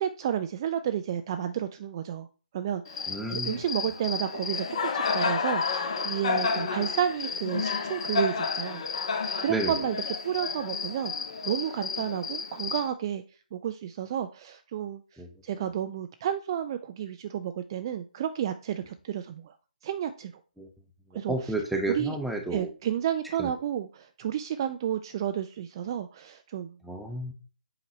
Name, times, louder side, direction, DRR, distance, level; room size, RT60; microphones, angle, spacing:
voice 1, 0.0-2.3 2.5-8.8 9.4-10.0 10.2-11.1 11.4-13.2 13.5-15.0 15.4-19.5 19.8-20.3 21.1-21.3 21.9-22.2 22.5-26.8, right 10 dB, 30° right, 9 dB, 0.4 m, -31 dB
Cricket, 2.8-12.9, left 5 dB, 40° left, 1.3 m, -31 dB
voice 2, 3.1-3.6 9.5-9.9 15.2-15.3 15.6-15.7 20.6-20.7 21.1-22.7 23.4-23.5 26.8-27.3, right 2 dB, ahead, 3 dB, 0.7 m, -31 dB
7.8 x 4.9 x 3.0 m, 0.36 s
figure-of-eight pair, 140°, 5 cm